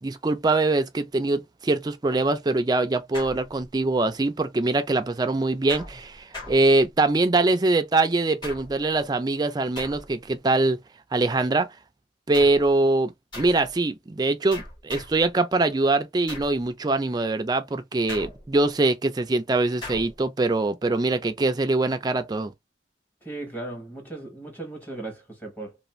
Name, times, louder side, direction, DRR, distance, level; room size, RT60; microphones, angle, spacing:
voice 1, 0.0-10.8 11.1-11.7 12.3-22.5, right 2 dB, 25° right, 0.4 m, -23 dB
sound 1, 3.1-4.0 5.7-7.2 8.4-9.0 9.8-10.4 12.3-12.8 13.3-13.7 14.5-15.3 16.3-16.7 18.1-18.7 19.8-20.2, left 2 dB, 25° left, 1.3 m, -40 dB
voice 2, 23.2-25.8, right 2 dB, 10° left, 1.0 m, -37 dB
2.5 x 2.5 x 3.0 m
head